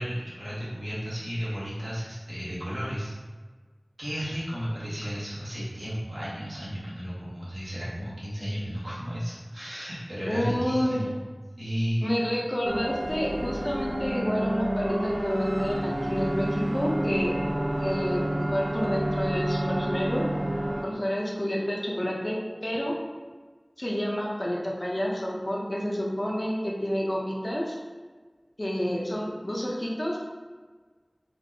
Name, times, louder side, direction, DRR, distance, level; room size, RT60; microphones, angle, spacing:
voice 1, 0.0-3.1 4.0-11.2 11.6-12.1, equal, 80° right, -9 dB, 1.0 m, -33 dB
voice 2, 10.3-11.0 12.0-17.3 17.8-20.2 20.8-22.9 23.8-27.8 28.6-30.2, equal, 40° left, -3 dB, 0.6 m, -29 dB
sound 1, 12.6-20.8, right 1 dB, 65° right, 0.3 m, -29 dB
4.3 x 2.0 x 2.7 m, 1.4 s
wide cardioid pair, 40°, 0 cm